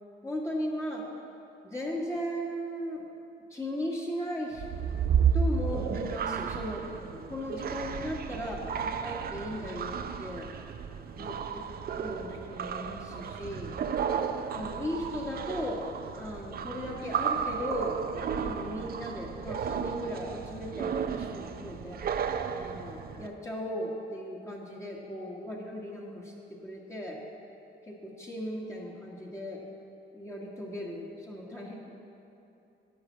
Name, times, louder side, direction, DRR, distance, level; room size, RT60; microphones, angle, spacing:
voice 1, 0.2-1.0 1.6-3.1 3.5-4.6 5.3-10.5 11.2-11.6 12.0-13.7 14.5-15.8 16.2-18.0 18.4-22.0 22.6-26.3 26.6-27.2 27.9-29.6 30.1-31.7, equal, 15° left, -3 dB, 1.4 m, -37 dB
sound 1, 4.5-23.3, right 7 dB, 50° right, 0.5 m, -33 dB
10.5 x 5.0 x 7.1 m, 2.9 s
cardioid pair, 90°, 20 cm